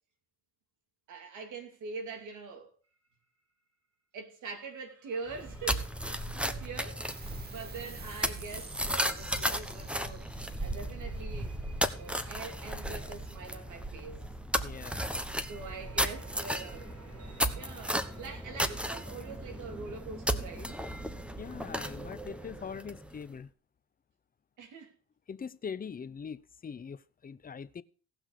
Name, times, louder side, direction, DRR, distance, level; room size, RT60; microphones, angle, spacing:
voice 1, 1.1-2.7 4.1-11.5 12.0-14.2 15.4-20.8 24.6-24.9, right 4 dB, 80° right, 3.0 m, -44 dB
sound 1, 2.8-3.1 4.6-9.4 10.2-20.7, right 4 dB, 55° right, 5.4 m, -60 dB
sound 2, 5.3-23.2, equal, 5° right, 1.1 m, -35 dB
sound 3, 7.1-14.0, right 4 dB, 30° right, 1.7 m, -52 dB
voice 2, 14.6-15.2 21.4-23.5 25.3-27.8, left 6 dB, 30° left, 0.7 m, -42 dB
17.5 x 6.1 x 4.9 m
cardioid pair, 90°, 30 cm